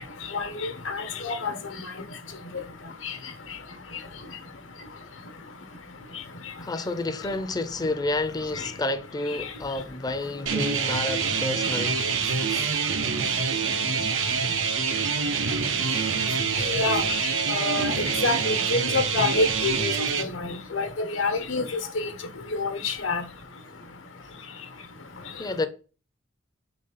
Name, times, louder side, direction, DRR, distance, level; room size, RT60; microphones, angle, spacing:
voice 1, 0.9-1.5 16.7-17.0 17.5-17.9 18.2-19.9 20.7-20.9 21.2-21.6 22.6-23.2, left 3 dB, 80° left, 1.0 m, -26 dB
voice 2, 6.6-12.0 25.4-25.7, left 2 dB, 20° left, 0.5 m, -30 dB
sound 1, 10.5-20.2, right 5 dB, 85° right, 0.7 m, -26 dB
4.6 x 3.9 x 5.5 m
head